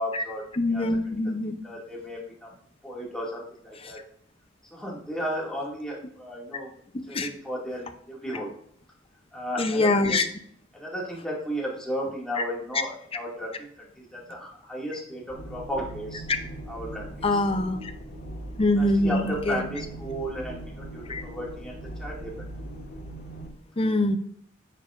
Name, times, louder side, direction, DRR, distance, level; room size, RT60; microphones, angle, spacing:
voice 1, 0.0-0.9 1.2-1.3 1.6-2.6 2.8-4.0 4.7-6.7 7.1-8.5 9.3-10.3 10.7-16.2 16.7-17.4 18.8-22.5, equal, 5° left, -4 dB, 2.2 m, -34 dB
voice 2, 0.6-1.6 6.9-7.3 9.6-10.3 17.2-17.9 18.6-19.7 21.1-21.2 23.8-24.2, left 2 dB, 30° left, 7 dB, 0.7 m, -24 dB
sound 1, 15.3-23.5, right 1 dB, 60° left, 3.0 m, -40 dB
9.9 x 7.1 x 2.5 m, 0.65 s
head